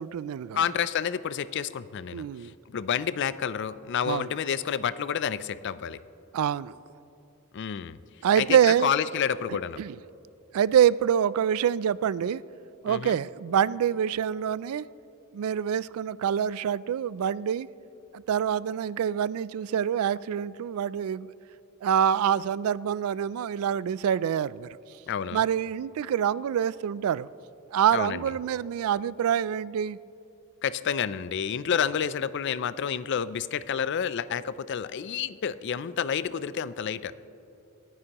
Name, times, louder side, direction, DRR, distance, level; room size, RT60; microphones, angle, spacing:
voice 1, 0.0-0.7 2.1-2.5 4.0-4.3 6.3-6.8 8.2-8.9 9.8-10.0 10.5-12.4 12.8-14.8 15.3-17.7 18.1-21.3 21.8-24.8 25.3-27.3 27.7-30.0, right 9 dB, 75° right, 0.3 m, -26 dB
voice 2, 0.5-2.3 2.7-6.0 7.5-8.0 8.4-9.8 12.9-13.2 25.1-25.4 27.9-28.2 30.6-37.1, left 8 dB, 55° left, 0.4 m, -29 dB
27.5 x 9.7 x 3.0 m
head